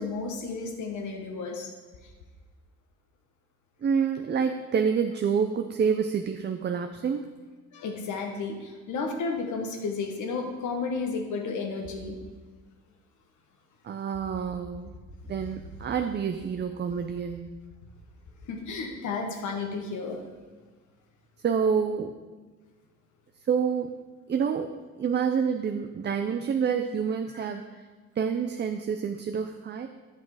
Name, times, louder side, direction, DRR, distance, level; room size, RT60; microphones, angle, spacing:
voice 1, 0.0-1.7 7.7-12.2 18.4-20.2, left 4 dB, 75° left, 3 dB, 1.4 m, -32 dB
voice 2, 3.8-7.3 13.8-14.9 15.3-17.5 21.4-22.1 23.5-23.9 24.3-24.7 25.0-27.6 28.2-29.9, right 6 dB, 35° right, 6 dB, 0.5 m, -27 dB
8.5 x 6.0 x 4.8 m, 1.4 s
cardioid pair, 90°, 30 cm